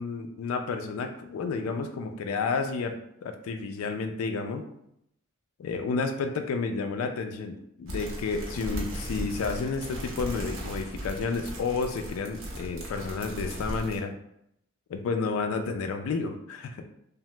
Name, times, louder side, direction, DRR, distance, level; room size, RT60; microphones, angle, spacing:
voice 1, 0.0-4.7 5.6-14.1 14.9-16.9, left 4 dB, 85° left, 6 dB, 0.3 m, -31 dB
sound 1, 7.9-14.0, equal, 75° right, 0.8 m, -37 dB
2.8 x 2.0 x 3.2 m, 0.75 s
head